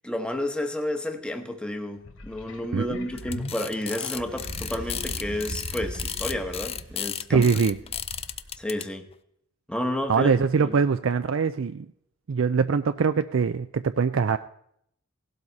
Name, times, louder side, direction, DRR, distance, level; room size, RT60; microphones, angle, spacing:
voice 1, 0.0-7.5 8.6-9.1 9.7-10.7, left 1 dB, 5° left, 5 dB, 1.1 m, -31 dB
sound 1, 2.0-4.6 5.2-5.3, left 2 dB, 65° left, 1.1 m, -41 dB
sound 2, 3.2-8.8, left 9 dB, 30° left, 0.5 m, -34 dB
sound 3, 4.1-7.2 7.7-8.6, right 1 dB, 85° right, 2.8 m, -38 dB
voice 2, 7.3-7.8 10.1-11.9 12.3-14.4, right 5 dB, 65° right, 10 dB, 0.4 m, -23 dB
17.0 x 12.0 x 4.1 m, 0.70 s
head